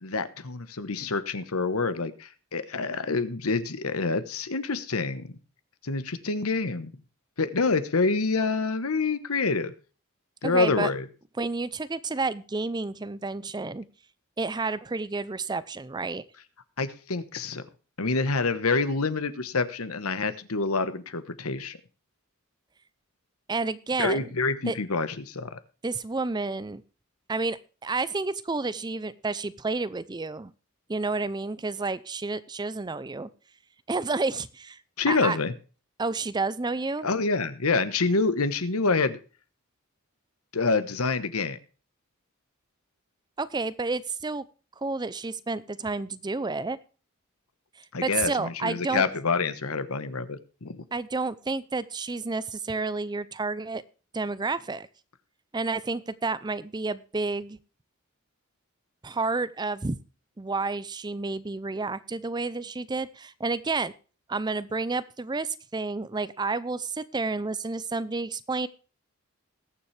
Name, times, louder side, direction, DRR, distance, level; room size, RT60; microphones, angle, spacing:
voice 1, 0.0-5.4 5.8-6.9 7.4-9.7 10.4-11.1 16.8-17.6 18.0-21.8 24.0-25.6 35.0-35.5 37.0-39.2 40.5-41.6 47.9-50.8, left 4 dB, 90° left, 12 dB, 1.2 m, -27 dB
voice 2, 10.4-10.9 11.4-13.9 14.4-16.2 23.5-24.3 24.7-24.8 25.8-26.8 27.3-30.5 30.9-33.3 33.9-34.8 35.1-35.4 36.0-37.1 43.4-44.4 44.8-46.8 48.0-49.0 50.9-53.8 54.1-54.9 55.5-57.6 59.0-60.0 60.4-63.9 64.3-68.7, right 3 dB, 20° right, 16 dB, 0.5 m, -30 dB
20.5 x 7.2 x 3.3 m, 0.36 s
head